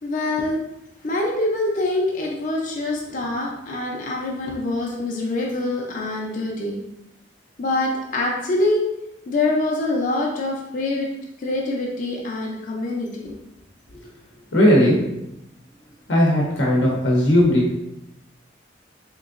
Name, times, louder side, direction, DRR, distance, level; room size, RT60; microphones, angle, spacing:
voice 1, 0.0-0.6 1.0-6.8 7.6-8.8 9.3-11.1 11.4-13.3, left 2 dB, 45° left, -2 dB, 0.5 m, -25 dB
voice 2, 14.5-15.0 16.1-17.7, equal, 75° left, -3 dB, 0.8 m, -17 dB
3.6 x 3.0 x 2.5 m, 0.85 s
head